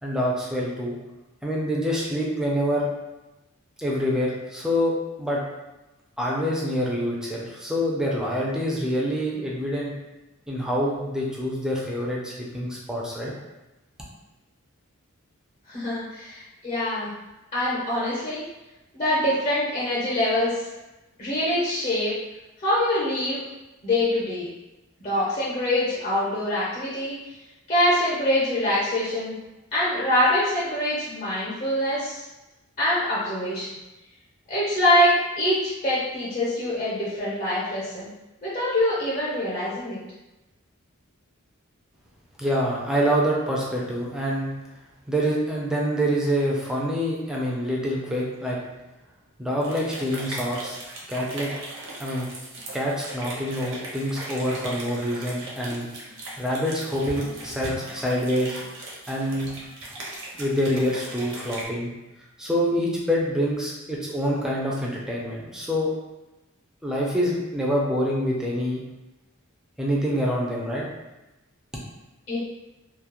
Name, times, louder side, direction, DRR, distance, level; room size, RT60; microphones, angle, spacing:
voice 1, 0.0-1.0 1.4-2.9 3.8-5.4 6.2-9.9 10.5-13.3 42.4-44.5 45.1-48.6 49.4-50.8 51.1-51.5 52.0-52.3 52.7-55.9 56.4-58.6 59.1-59.5 59.9-60.0 60.4-61.9 62.4-65.9 66.8-68.8 69.8-70.9, equal, 5° right, -4 dB, 0.4 m, -26 dB
voice 2, 15.7-17.1 17.5-18.4 18.9-20.6 21.2-22.1 22.6-23.4 23.8-24.5 25.0-27.2 27.7-29.3 29.7-32.2 32.8-33.8 34.5-38.1 38.4-40.0 72.3-72.4, left 1 dB, 35° left, -9 dB, 0.7 m, -24 dB
sound 1, 49.6-61.6, right 1 dB, 60° right, 0.6 m, -38 dB
2.3 x 2.0 x 2.8 m, 1.0 s
head